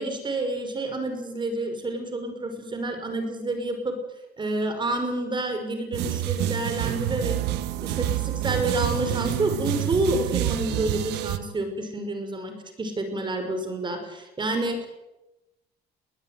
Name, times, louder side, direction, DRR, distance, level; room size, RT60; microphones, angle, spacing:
voice 1, 0.0-4.0 4.4-7.4 7.8-14.9, right 2 dB, 25° right, 6 dB, 6.0 m, -29 dB
sound 1, 5.9-11.4, right 13 dB, 85° right, 1.4 m, -28 dB
21.5 x 19.5 x 9.6 m, 1.0 s
cardioid pair, 110°, 17 cm